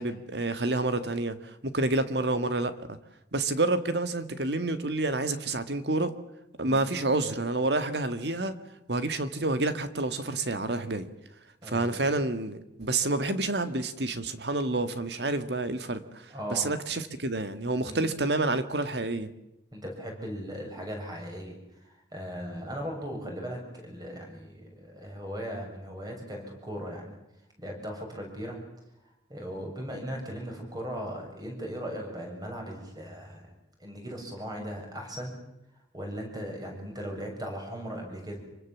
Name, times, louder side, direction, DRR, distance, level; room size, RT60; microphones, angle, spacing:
voice 1, 0.0-2.7 3.3-6.1 6.6-8.6 8.9-11.1 11.6-19.3, right 2 dB, 65° right, 1.9 m, -29 dB
voice 2, 16.3-16.7 17.8-18.1 19.7-27.2 27.6-28.6 29.0-33.5 33.8-35.4 35.9-38.4, equal, 25° right, 7.0 m, -38 dB
26.5 x 24.5 x 7.4 m
head